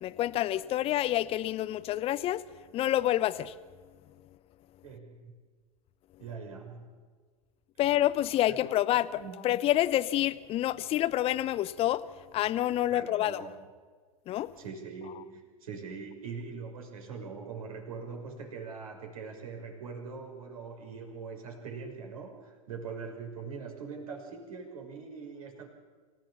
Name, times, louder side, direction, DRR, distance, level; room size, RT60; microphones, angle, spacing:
voice 1, 0.0-2.4 2.7-3.5 7.8-12.0 12.3-13.4 14.3-14.5, left 13 dB, 30° left, 0.8 m, -28 dB
voice 2, 4.8-5.3 6.2-6.9 8.5-8.6 9.1-9.4 12.9-13.5 14.6-25.7, right 5 dB, 70° right, 6.1 m, -42 dB
26.0 x 17.0 x 7.3 m
figure-of-eight pair, 95°, 19 cm